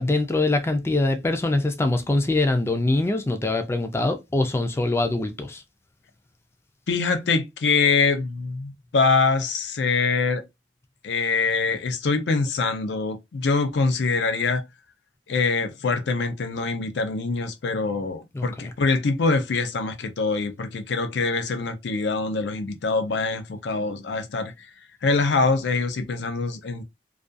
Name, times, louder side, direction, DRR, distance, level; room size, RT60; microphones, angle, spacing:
voice 1, 0.0-5.6 18.3-18.5, left 2 dB, 15° left, 0.3 m, -23 dB
voice 2, 6.9-10.4 11.0-14.6 15.3-24.5 25.0-26.8, left 4 dB, 85° left, 0.5 m, -24 dB
2.4 x 2.2 x 2.5 m
head